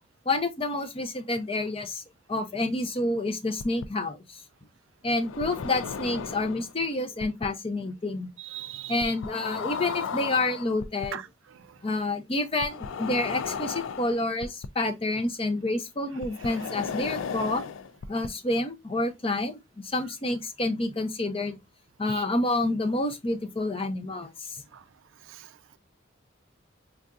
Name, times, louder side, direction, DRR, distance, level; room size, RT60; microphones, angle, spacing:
voice 1, 0.3-2.0 2.3-4.4 5.0-8.3 8.9-11.2 11.8-17.6 18.1-21.6 22.0-24.6, left 2 dB, 30° left, 0.7 m, -28 dB
sound 1, 3.6-3.9 5.2-6.7 7.2-7.5 9.0-11.1 12.6-14.7 16.2-18.3, left 6 dB, 85° left, 0.4 m, -35 dB
voice 2, 8.4-9.1 11.1-11.2 11.5-11.8 22.1-22.2 24.7-24.8 25.3-25.8, right 11 dB, 85° right, 0.4 m, -40 dB
4.7 x 2.6 x 2.3 m
head